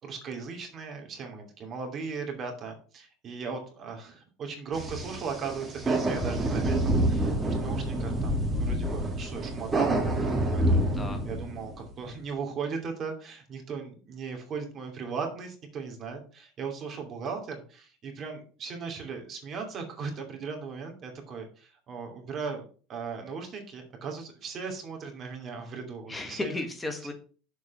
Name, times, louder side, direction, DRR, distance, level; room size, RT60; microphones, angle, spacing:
voice 1, 0.0-22.6 22.9-26.6, right 5 dB, 40° right, 3 dB, 2.7 m, -37 dB
sound 1, 4.7-11.9, right 1 dB, 20° right, 2.3 m, -27 dB
voice 2, 10.7-11.2 26.1-27.1, left 2 dB, 15° left, 5 dB, 1.6 m, -34 dB
7.1 x 4.7 x 6.1 m, 0.39 s
hypercardioid pair, 80°, 0 cm